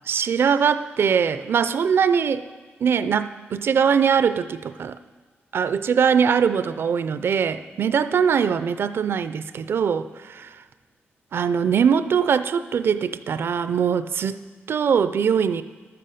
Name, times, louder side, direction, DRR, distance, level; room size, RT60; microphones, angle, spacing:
voice 1, 0.1-2.5 2.8-5.0 5.5-10.5 11.3-15.6, right 7 dB, 60° right, 13 dB, 0.5 m, -22 dB
11.5 x 7.7 x 6.7 m, 1.5 s
wide cardioid pair, 125°, 5 cm